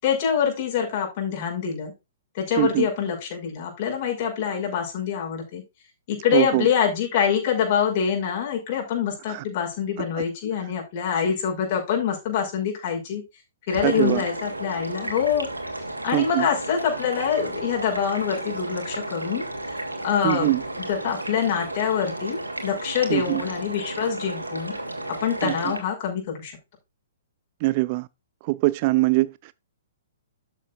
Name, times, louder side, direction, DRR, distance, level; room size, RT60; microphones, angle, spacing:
voice 1, 0.0-1.9 2.3-5.6 6.1-13.2 13.7-15.5 16.0-19.5 20.0-20.6 20.9-24.7 25.1-26.5, left 8 dB, 35° left, 5.7 m, -25 dB
voice 2, 2.6-2.9 6.3-6.7 9.3-9.4 10.0-10.1 13.8-14.2 16.1-16.5 20.2-20.6 23.1-23.4 25.4-25.7 27.6-28.1 28.4-29.5, right 20 dB, 35° right, 0.4 m, -23 dB
sound 1, 13.7-25.8, right 1 dB, 80° right, 2.8 m, -33 dB
12.5 x 7.9 x 2.5 m
figure-of-eight pair, 120°, 0 cm